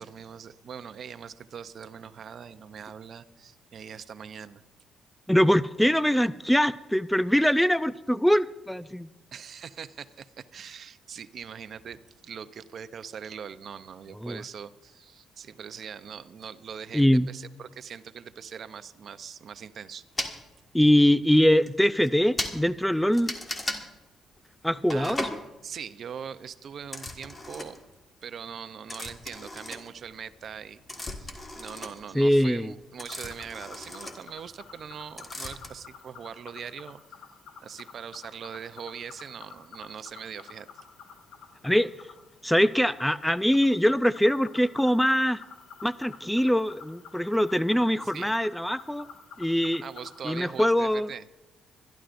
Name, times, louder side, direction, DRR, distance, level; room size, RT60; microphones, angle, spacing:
voice 1, 0.0-4.6 9.3-20.0 24.9-25.2 25.6-27.8 28.2-37.0 37.6-40.7 48.1-48.4 49.8-51.3, right 7 dB, 55° right, 13 dB, 0.6 m, -41 dB
voice 2, 5.3-9.1 14.2-14.4 16.9-17.3 20.7-23.3 24.6-25.4 32.1-32.7 41.6-41.9 42.4-45.4 45.8-49.1 49.4-49.8 50.2-51.1, equal, 5° left, 16 dB, 0.3 m, -23 dB
sound 1, 20.2-20.3 21.2-21.3 21.7-21.8 21.9-22.1 22.4-22.6 23.1-23.8 24.9-25.4 26.8-27.9 28.9-30.3 30.6-34.9 35.2-35.7, left 1 dB, 25° left, 1.7 m, -36 dB
sound 2, 33.1-50.6, left 6 dB, 80° left, 2.0 m, -49 dB
25.0 x 11.5 x 2.6 m, 1.0 s
cardioid pair, 90°, 0 cm